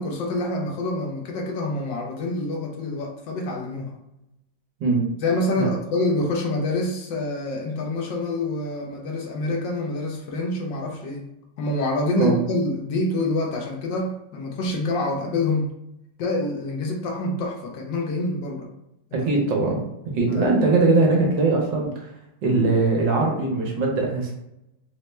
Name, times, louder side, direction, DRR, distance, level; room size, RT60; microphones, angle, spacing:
voice 1, 0.0-4.0 5.2-11.3 11.6-15.7 16.2-18.7 20.3-20.5, left 2 dB, 75° left, 1 dB, 1.2 m, -26 dB
voice 2, 19.1-19.8 20.1-22.1 22.4-24.3, right 3 dB, 70° right, 0 dB, 1.4 m, -21 dB
4.2 x 2.0 x 3.2 m, 0.85 s
omnidirectional pair, 2.1 m